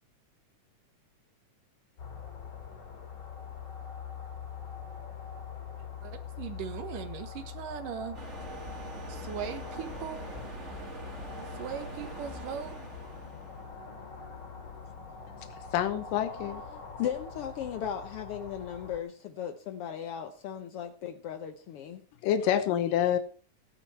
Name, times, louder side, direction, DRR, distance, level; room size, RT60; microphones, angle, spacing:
sound 1, 2.0-19.0, left 6 dB, 40° left, 2.9 m, -43 dB
voice 1, 6.0-8.2 9.1-10.3 11.6-12.7, right 8 dB, 80° right, 9 dB, 2.9 m, -39 dB
sound 2, 8.1-13.7, right 3 dB, 25° right, 2.1 m, -44 dB
voice 2, 15.7-16.6 22.2-23.2, left 10 dB, 85° left, 8 dB, 2.6 m, -27 dB
voice 3, 17.0-22.0, left 9 dB, 70° left, 5 dB, 1.4 m, -36 dB
15.0 x 10.0 x 4.4 m, 0.39 s
omnidirectional pair, 3.8 m